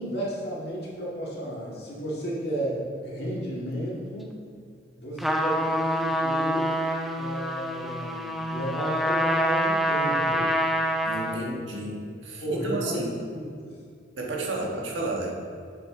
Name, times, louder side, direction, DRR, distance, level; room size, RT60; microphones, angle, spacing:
voice 1, 0.0-4.3 5.0-6.7 7.1-10.5 11.2-11.6 12.4-13.8, right 1 dB, 55° left, -6 dB, 2.0 m, -33 dB
Trumpet, 5.2-11.5, equal, ahead, 0.4 m, -26 dB
voice 2, 11.0-13.2 14.2-15.3, right 2 dB, 85° right, -1 dB, 1.3 m, -32 dB
8.0 x 6.2 x 3.7 m, 2.2 s
head